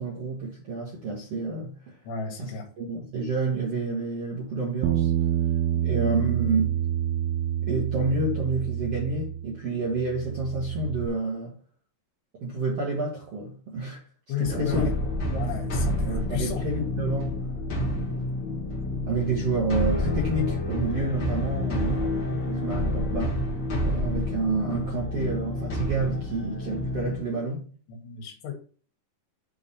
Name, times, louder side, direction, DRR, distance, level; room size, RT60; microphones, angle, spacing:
voice 1, 0.0-2.0 2.4-2.5 2.8-5.1 5.8-6.7 7.6-11.5 12.4-14.0 14.4-14.9 15.3-15.4 16.1-17.4 17.8-17.9 19.1-23.5 23.8-27.7, right 3 dB, 55° right, 1.8 m, -29 dB
voice 2, 2.0-2.7 5.7-5.9 14.3-15.0 15.3-16.7 18.1-18.3 27.9-28.5, left 7 dB, 70° left, 4.1 m, -33 dB
Bass guitar, 4.8-9.6 9.9-11.1, right 11 dB, 80° right, 2.4 m, -27 dB
sound 1, 14.4-27.2, left 1 dB, 40° left, 1.8 m, -29 dB
9.4 x 3.8 x 4.2 m
omnidirectional pair, 5.0 m